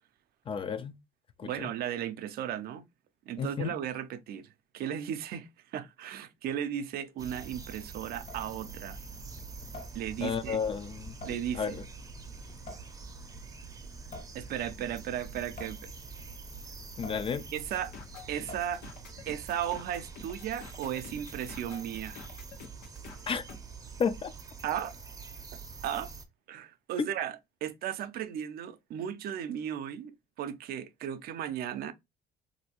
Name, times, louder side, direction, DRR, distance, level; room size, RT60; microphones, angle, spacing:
voice 1, 0.5-1.0 1.4-1.7 3.4-3.7 10.2-11.2 11.5-11.8 17.0-17.4 23.3-23.4 24.0-24.3, left 6 dB, 30° left, 0.3 m, -32 dB
voice 2, 1.4-2.9 3.3-4.5 4.7-9.0 9.9-10.6 11.2-11.8 14.3-15.8 17.5-17.9 18.3-18.8 19.3-22.2 24.6-25.0 25.5-26.1 26.5-30.1 30.4-31.9, right 10 dB, 65° right, 0.5 m, -35 dB
sound 1, 7.2-26.2, right 5 dB, 20° right, 0.6 m, -46 dB
Water tap faucet / Sink (filling or washing) / Drip, 8.2-19.1, left 2 dB, 50° left, 1.2 m, -49 dB
sound 2, 17.7-23.6, left 6 dB, 85° left, 0.9 m, -49 dB
3.2 x 2.7 x 2.8 m
cardioid pair, 110°, 17 cm